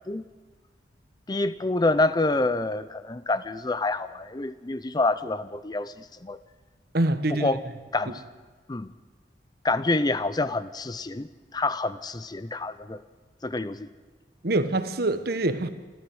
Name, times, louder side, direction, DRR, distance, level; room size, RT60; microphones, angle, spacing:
voice 1, 1.3-5.9 6.2-6.4 7.3-7.6 7.9-8.2 8.7-8.9 9.6-13.0 13.4-13.9, left 2 dB, 20° left, 14 dB, 0.6 m, -27 dB
voice 2, 6.9-7.5 14.4-15.7, right 2 dB, 55° right, 10 dB, 1.3 m, -25 dB
27.0 x 13.0 x 7.9 m, 1.4 s
head